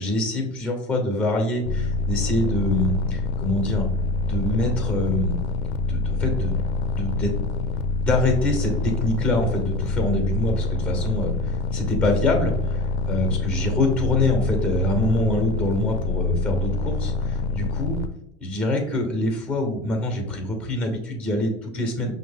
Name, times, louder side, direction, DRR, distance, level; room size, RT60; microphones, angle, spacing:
voice 1, 0.0-3.9 4.2-5.4 5.9-6.6 6.9-7.3 8.0-18.0 18.4-22.1, left 1 dB, 5° left, 2 dB, 0.9 m, -25 dB
sound 1, 1.7-18.1, left 4 dB, 70° left, 0.5 m, -26 dB
5.4 x 2.2 x 3.5 m, 0.80 s
hypercardioid pair, 105°, 35 cm